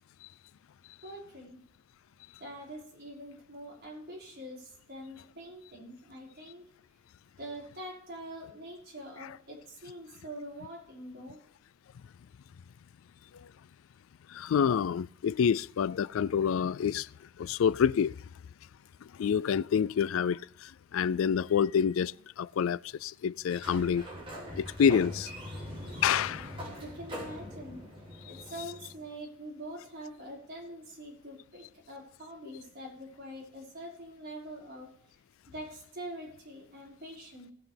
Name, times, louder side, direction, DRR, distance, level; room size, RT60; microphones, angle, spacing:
voice 1, 1.0-1.6 2.4-6.7 7.4-11.4 26.8-27.9 28.2-34.9 35.5-37.5, right 1 dB, 50° right, 5.3 m, -44 dB
voice 2, 14.3-17.1 17.4-18.2 19.0-24.1 24.5-25.3 26.0-26.6, left 7 dB, 70° left, 0.3 m, -28 dB
Sliding door, 23.4-29.1, equal, 25° right, 4.4 m, -42 dB
19.0 x 7.9 x 3.5 m
head